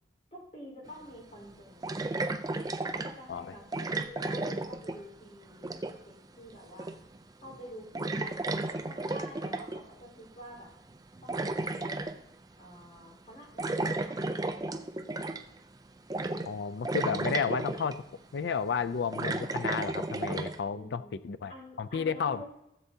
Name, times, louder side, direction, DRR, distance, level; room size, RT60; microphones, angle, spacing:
voice 1, 0.3-2.1 2.9-6.9 7.4-10.7 11.2-12.0 12.5-15.4 20.7-21.1 21.5-22.4, equal, 35° left, -3 dB, 4.2 m, -49 dB
sound 1, 0.9-1.0 1.8-3.2 3.7-5.2 5.5-6.1 6.8-7.2 7.5-7.6 7.9-9.8 10.9-12.2 13.6-15.6 16.1-16.6 16.8-18.0 18.7-20.6, right 2 dB, 20° right, 0.4 m, -33 dB
voice 2, 16.5-18.0 18.3-21.5 21.8-22.4, left 6 dB, 60° left, 13 dB, 0.4 m, -32 dB
16.0 x 8.0 x 2.8 m, 0.86 s
head